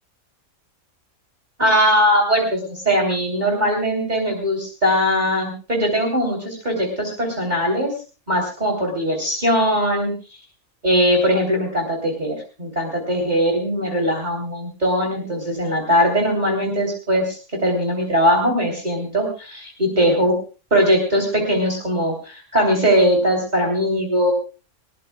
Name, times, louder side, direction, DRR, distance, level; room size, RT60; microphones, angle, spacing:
voice 1, 1.6-7.9 8.3-10.1 10.8-20.3 20.7-24.3, equal, 30° right, 1 dB, 3.4 m, -20 dB
20.5 x 18.5 x 2.3 m, 0.34 s
omnidirectional pair, 1.4 m